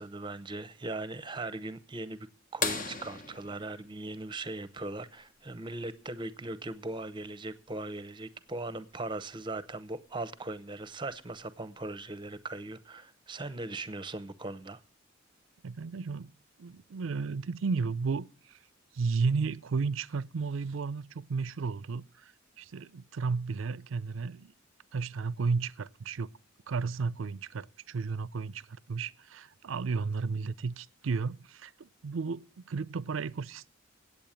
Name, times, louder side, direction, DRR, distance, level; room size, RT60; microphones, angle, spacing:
voice 1, 0.0-2.3 2.5-14.8, right 2 dB, 25° right, 0.8 m, -39 dB
sound 1, 2.6-5.1 7.0-7.1 9.3-9.4 11.1-11.4 12.2-12.3, left 3 dB, 45° left, 1.3 m, -36 dB
voice 2, 15.6-16.3 16.6-18.6 18.9-22.3 22.6-24.5 24.9-26.3 26.7-33.7, right 4 dB, 70° right, 0.5 m, -33 dB
8.7 x 8.7 x 8.8 m
head